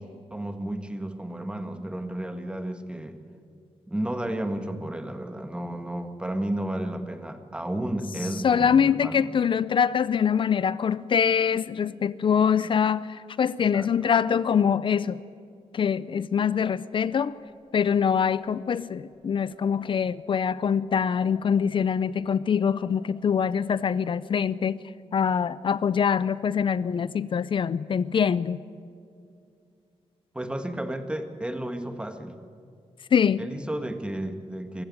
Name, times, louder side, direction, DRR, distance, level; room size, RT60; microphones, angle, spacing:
voice 1, 0.3-3.2 3.9-9.3 13.7-13.9 30.3-32.4 33.4-34.8, right 1 dB, 10° right, 8 dB, 1.7 m, -32 dB
voice 2, 8.4-15.2 15.7-17.3 17.7-24.8 25.1-28.6 33.1-33.5, left 7 dB, 50° left, 18 dB, 0.6 m, -24 dB
sound 1, 17.1-24.0, right 1 dB, 40° right, 7.0 m, -56 dB
24.5 x 15.0 x 9.7 m, 2.4 s
wide cardioid pair, 115°, 11 cm